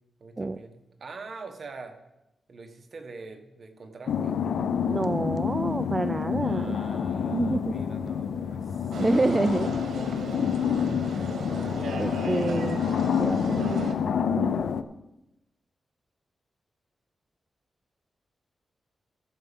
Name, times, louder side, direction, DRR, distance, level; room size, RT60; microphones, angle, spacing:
voice 1, 0.2-2.0 2.5-4.4 6.2-9.0 10.6-11.0, right 4 dB, 50° right, 5 dB, 1.5 m, -44 dB
sound 1, 4.1-14.8, left 7 dB, 85° left, 0.6 m, -28 dB
voice 2, 4.9-6.8 7.2-7.8 8.9-9.7 12.0-12.8 13.2-14.0 14.3-14.6, right 2 dB, 25° right, 11 dB, 0.3 m, -28 dB
sound 2, 8.9-13.9, right 4 dB, 85° right, 1.3 m, -37 dB
14.5 x 5.2 x 7.1 m, 0.92 s
wide cardioid pair, 105°, 0 cm